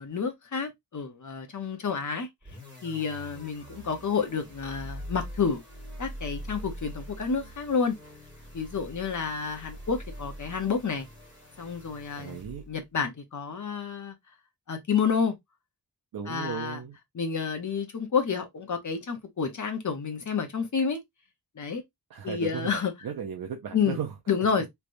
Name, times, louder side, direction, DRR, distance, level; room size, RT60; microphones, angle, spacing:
voice 1, 0.0-2.3 2.8-5.6 6.0-8.0 8.5-11.1 11.6-12.4 12.7-14.1 14.7-15.3 16.3-16.8 17.1-21.0 21.6-21.8 22.2-22.9 23.7-24.0 24.3-24.7, left 6 dB, 50° left, 0.9 m, -29 dB
sound 1, 2.4-12.8, equal, 10° right, 2.0 m, -43 dB
voice 2, 12.2-12.6 16.1-17.0 22.1-24.5, right 7 dB, 65° right, 0.6 m, -36 dB
3.4 x 3.0 x 2.5 m
wide cardioid pair, 155°, 38 cm